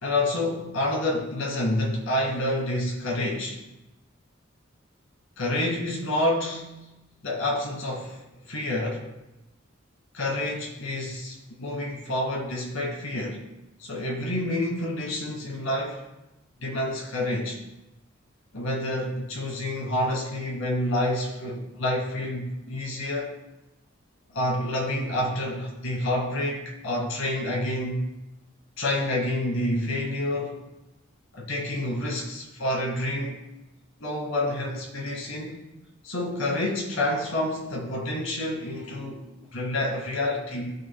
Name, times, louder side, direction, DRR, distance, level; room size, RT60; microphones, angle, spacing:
voice 1, 0.0-3.6 5.4-6.9 7.2-9.1 10.1-13.4 13.8-16.1 16.6-17.6 18.5-23.3 24.3-28.1 28.8-30.7 31.3-33.4 34.0-35.6 36.0-39.2 39.5-40.8, left 1 dB, 90° left, -1 dB, 2.2 m, -28 dB
20.0 x 6.9 x 2.2 m, 0.98 s
head